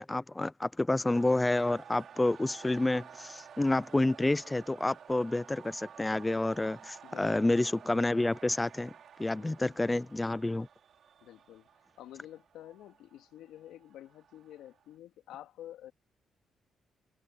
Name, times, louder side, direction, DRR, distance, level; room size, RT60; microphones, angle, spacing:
voice 1, 0.0-8.9 9.2-10.7, left 2 dB, 15° left, 0.7 m, -29 dB
sound 1, 1.1-14.9, right 8 dB, 60° right, 4.2 m, -53 dB
voice 2, 7.0-7.5 9.3-9.7 11.2-11.7 12.0-15.9, left 12 dB, 85° left, 3.1 m, -50 dB
cardioid pair, 90°, 0 cm